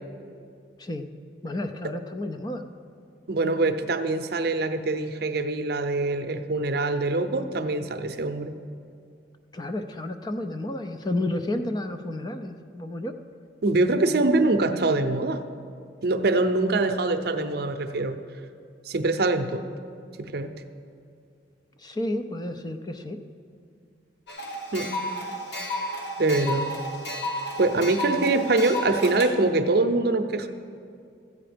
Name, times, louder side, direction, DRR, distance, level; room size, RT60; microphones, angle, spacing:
voice 1, 1.4-2.6 9.5-13.1 21.8-23.2, left 1 dB, 25° left, 7 dB, 0.5 m, -31 dB
voice 2, 3.3-8.6 13.6-15.4 16.0-18.2 18.9-19.6 20.2-20.5 24.7-24.9 26.2-26.7 27.6-30.5, right 2 dB, 60° right, 8 dB, 0.6 m, -24 dB
sound 1, 24.3-29.3, left 1 dB, 80° left, 1.4 m, -32 dB
14.0 x 8.6 x 5.1 m, 2.4 s
head